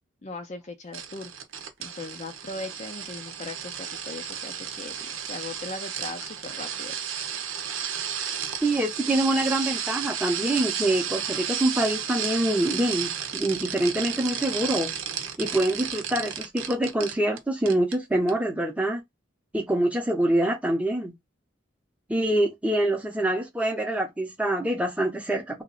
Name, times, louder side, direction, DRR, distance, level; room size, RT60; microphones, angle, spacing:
voice 1, 0.2-1.3 1.8-6.9, left 3 dB, 35° left, 0.5 m, -39 dB
sound 1, 0.9-17.4 17.7-18.0 18.3-18.4, right 8 dB, 80° right, 0.8 m, -33 dB
voice 2, 8.6-14.9 15.4-19.0 19.5-21.1 22.1-25.6, right 1 dB, 5° right, 0.8 m, -25 dB
2.9 x 2.5 x 3.9 m
head